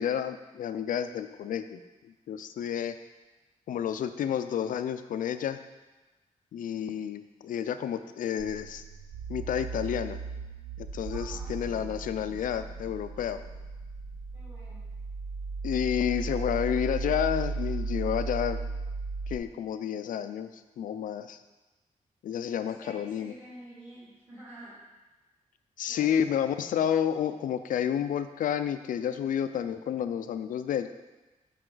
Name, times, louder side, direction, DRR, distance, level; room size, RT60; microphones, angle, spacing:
voice 1, 0.0-3.0 3.7-5.6 6.5-8.8 9.3-10.2 10.8-13.4 15.6-18.6 19.3-20.5 20.8-21.4 22.2-23.3 25.8-30.9, left 9 dB, 90° left, 11 dB, 0.4 m, -30 dB
sound 1, 8.4-19.4, right 3 dB, 55° right, 0.5 m, -36 dB
voice 2, 11.1-11.6 14.3-14.8 22.6-24.7 25.9-26.3, right 1 dB, 20° right, -13 dB, 2.5 m, -49 dB
7.9 x 5.0 x 3.9 m, 1.1 s
wide cardioid pair, 175°, 13 cm